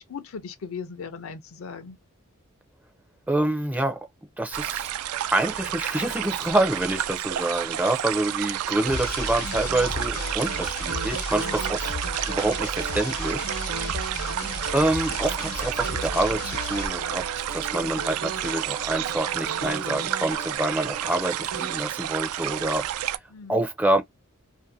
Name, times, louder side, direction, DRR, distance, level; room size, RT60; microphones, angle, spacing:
voice 1, 0.0-2.0 11.6-11.7 13.7-14.0 23.3-23.6, left 5 dB, 70° left, 0.5 m, -38 dB
voice 2, 3.3-4.1 4.4-4.9 5.3-11.9 12.3-13.5 14.7-17.2 17.5-22.9 23.5-24.0, right 1 dB, 5° right, 0.4 m, -26 dB
sound 1, 4.5-23.2, right 12 dB, 85° right, 0.3 m, -31 dB
sound 2, 8.9-16.9, left 2 dB, 85° left, 0.9 m, -34 dB
sound 3, 9.5-21.8, right 3 dB, 65° right, 0.9 m, -37 dB
2.6 x 2.5 x 2.5 m
head